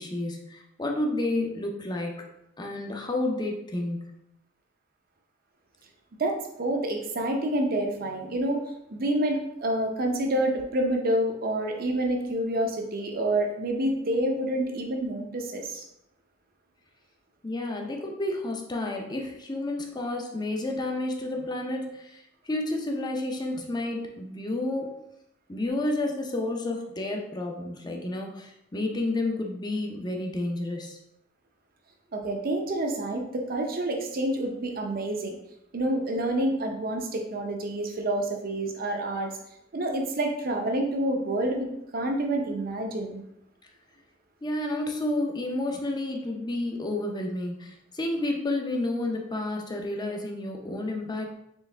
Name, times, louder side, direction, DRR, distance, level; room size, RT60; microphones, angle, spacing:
voice 1, 0.0-2.2 2.6-4.1 17.4-25.0 25.5-31.0 44.4-51.3, left 2 dB, 20° left, 1 dB, 0.6 m, -30 dB
voice 2, 6.2-8.6 8.9-15.8 32.1-35.4 35.7-39.3 39.7-41.7 41.9-43.2, right 1 dB, 50° right, 3 dB, 0.7 m, -28 dB
4.6 x 3.3 x 3.3 m, 0.80 s
head